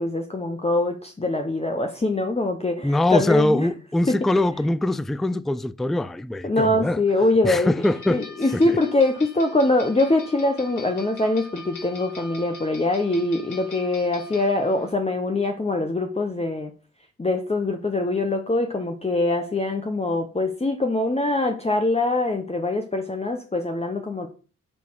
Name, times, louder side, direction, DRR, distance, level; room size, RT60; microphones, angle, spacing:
voice 1, 0.0-3.7 4.1-4.2 6.4-16.7 17.2-24.3, left 2 dB, 15° left, 1.1 m, -23 dB
voice 2, 2.8-7.0 7.4-8.2 8.5-8.8, left 1 dB, ahead, 0.4 m, -23 dB
sound 1, 7.8-14.9, left 3 dB, 60° left, 1.9 m, -43 dB
7.2 x 3.5 x 6.3 m
hypercardioid pair, 40°, 35 cm